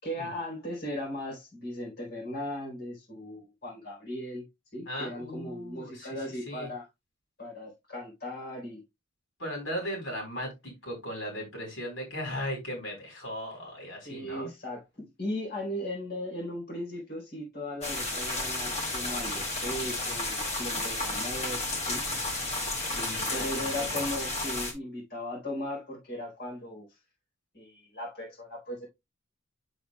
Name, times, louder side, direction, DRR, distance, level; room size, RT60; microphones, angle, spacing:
voice 1, 0.0-4.4 4.7-6.9 7.4-8.8 14.0-21.6 21.9-22.0 22.9-26.9 27.5-28.9, left 1 dB, 55° left, 4.0 m, -37 dB
voice 2, 4.9-6.2 6.5-6.7 9.4-14.5 22.8-24.0, equal, 75° left, 4.3 m, -37 dB
sound 1, 17.8-24.7, left 2 dB, 35° left, 2.2 m, -32 dB
7.8 x 7.3 x 2.3 m
head